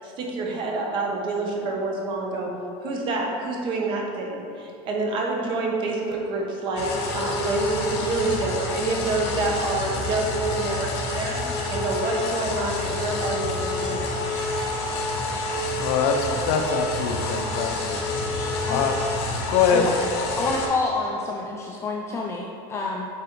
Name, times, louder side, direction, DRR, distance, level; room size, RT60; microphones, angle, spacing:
voice 1, 0.0-2.5 2.8-14.4, right 2 dB, 35° right, 0 dB, 1.0 m, -27 dB
sound 1, 6.8-20.7, left 2 dB, 80° left, 1.4 m, -28 dB
voice 2, 15.8-18.0 18.7-19.0 19.5-19.8, left 7 dB, 60° left, 5 dB, 0.6 m, -23 dB
voice 3, 20.4-23.1, left 3 dB, 20° left, -1 dB, 0.4 m, -28 dB
8.5 x 4.7 x 3.1 m, 2.6 s
cardioid pair, 160°, 14 cm